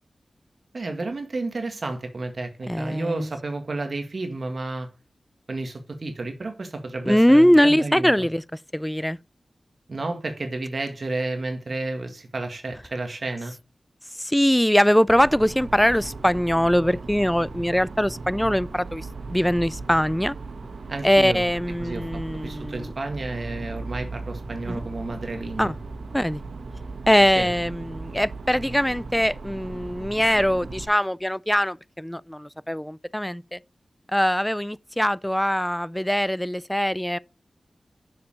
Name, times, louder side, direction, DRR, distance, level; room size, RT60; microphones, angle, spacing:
voice 1, 0.7-4.9 5.5-8.3 9.9-13.5 20.9-21.4 21.8-25.7 27.3-27.5, right 2 dB, 55° right, 1.7 m, -31 dB
voice 2, 2.7-3.3 7.1-8.4 8.7-9.2 14.2-20.4 21.0-22.9 24.7-24.8 25.6-25.7 26.1-26.4 27.1-33.6 34.1-37.2, equal, 5° left, 0.4 m, -22 dB
sound 1, 15.1-30.8, right 3 dB, 85° right, 1.3 m, -37 dB
6.8 x 6.7 x 6.4 m
wide cardioid pair, 80°, 0 cm